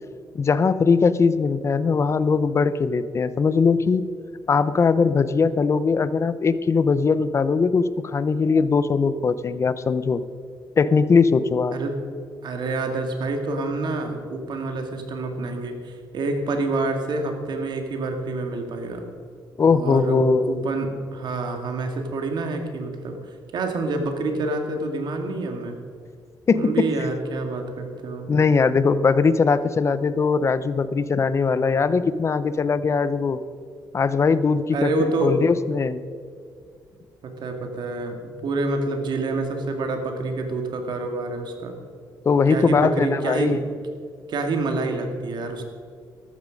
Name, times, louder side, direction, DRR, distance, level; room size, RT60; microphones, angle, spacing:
voice 1, 0.3-4.0 4.5-10.2 10.8-11.7 19.6-20.6 26.5-26.9 28.3-33.4 33.9-36.0 42.2-43.6, left 5 dB, 35° left, 14 dB, 0.7 m, -20 dB
voice 2, 12.4-19.0 19.7-23.2 23.5-25.8 26.5-28.3 34.7-35.4 37.2-41.8 42.5-43.6 44.3-45.6, right 3 dB, 60° right, 5 dB, 2.2 m, -27 dB
14.0 x 12.5 x 5.2 m, 2.2 s
cardioid pair, 115°, 8 cm